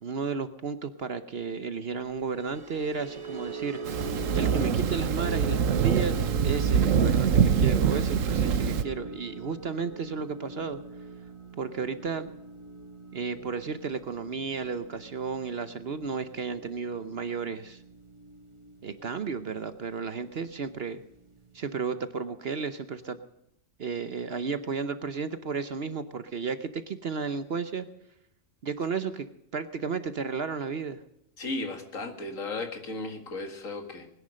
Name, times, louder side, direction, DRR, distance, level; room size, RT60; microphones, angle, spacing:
voice 1, 0.0-4.0 4.3-10.8 11.6-12.3 13.1-17.8 18.8-21.0 21.5-23.2 23.8-27.9 28.6-29.3 29.5-31.0, right 5 dB, 55° right, 12 dB, 1.0 m, -33 dB
sound 1, 2.3-18.7 19.0-19.3 19.7-19.9, right 3 dB, 25° right, 1.3 m, -41 dB
Thunder, 3.9-8.8, right 7 dB, 80° right, 1.3 m, -24 dB
voice 2, 31.4-34.1, left 2 dB, 80° left, 6 dB, 2.4 m, -35 dB
20.5 x 10.5 x 6.4 m, 0.84 s
omnidirectional pair, 1.3 m